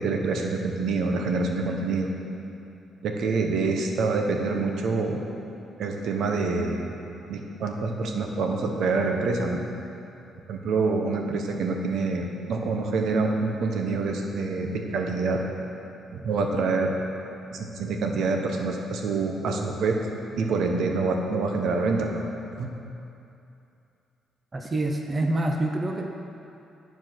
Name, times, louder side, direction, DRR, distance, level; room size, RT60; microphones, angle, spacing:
voice 1, 0.0-2.1 3.0-5.2 5.8-6.9 7.3-9.6 10.5-15.4 16.1-17.0 17.5-20.0 20.4-22.2 22.6-22.7, right 3 dB, 70° right, 2 dB, 1.0 m, -26 dB
voice 2, 24.5-26.1, right 1 dB, 25° right, 2 dB, 0.7 m, -26 dB
10.0 x 4.8 x 6.1 m, 2.7 s
cardioid pair, 90°, 0 cm